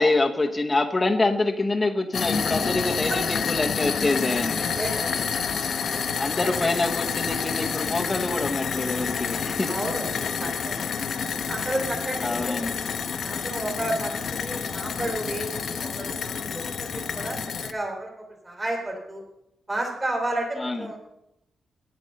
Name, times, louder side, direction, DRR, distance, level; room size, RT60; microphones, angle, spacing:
voice 1, 0.0-4.7 6.1-9.7 12.2-12.7 20.6-20.9, left 2 dB, 20° left, 1 dB, 0.9 m, -25 dB
sound 1, 2.1-17.7, left 6 dB, 65° left, 0.7 m, -29 dB
voice 2, 4.6-5.2 5.9-6.1 6.6-6.7 9.7-10.1 10.4-11.0 11.5-12.7 13.2-19.2 19.7-21.0, right 1 dB, 20° right, 0 dB, 3.0 m, -32 dB
9.6 x 8.4 x 6.4 m, 0.82 s
cardioid pair, 120°, 0 cm